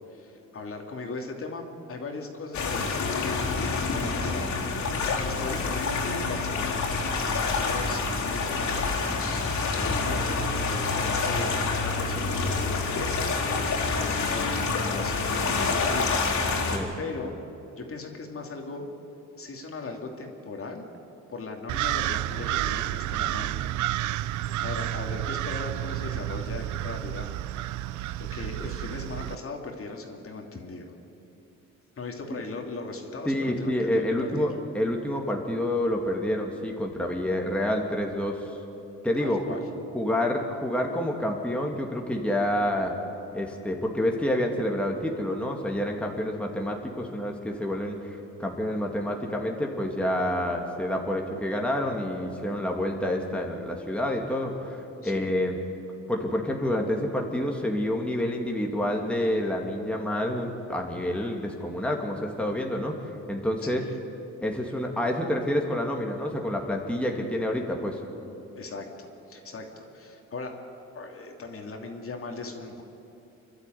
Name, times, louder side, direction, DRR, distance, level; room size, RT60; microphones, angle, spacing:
voice 1, 0.1-4.8 5.2-6.9 7.4-9.4 9.7-14.5 14.9-16.2 16.6-17.3 17.8-18.9 19.4-20.8 21.3-24.0 24.6-27.3 28.2-30.9 32.0-34.6 39.2-39.6 55.0-55.3 63.6-63.9 68.6-70.6 70.9-72.8, left 3 dB, 45° left, 2 dB, 2.9 m, -38 dB
sound 1, 2.5-16.8, left 4 dB, 70° left, 4.1 m, -27 dB
sound 2, 21.7-29.4, right 14 dB, 75° right, 0.6 m, -30 dB
voice 2, 33.3-38.5 39.0-39.6 39.9-42.9 43.3-55.6 56.1-63.0 63.3-63.8 64.4-68.0, left 1 dB, 5° left, 0 dB, 2.4 m, -28 dB
27.5 x 12.0 x 9.4 m, 2.9 s
cardioid pair, 90°, 30 cm